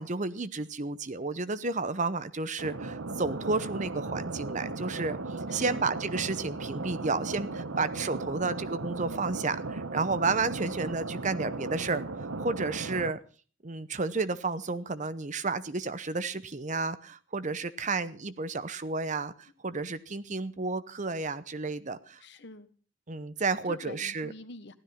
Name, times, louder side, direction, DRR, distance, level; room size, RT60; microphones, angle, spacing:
voice 1, 0.0-5.2 5.5-12.0 12.4-13.2 13.6-22.2 23.1-24.3, right 3 dB, 40° right, 14 dB, 0.8 m, -31 dB
sound 1, 2.6-13.1, right 3 dB, 80° right, 1.1 m, -36 dB
voice 2, 5.5-5.9 22.2-22.7 23.6-24.8, left 2 dB, 60° left, 10 dB, 1.4 m, -46 dB
15.5 x 12.5 x 5.9 m, 0.40 s
head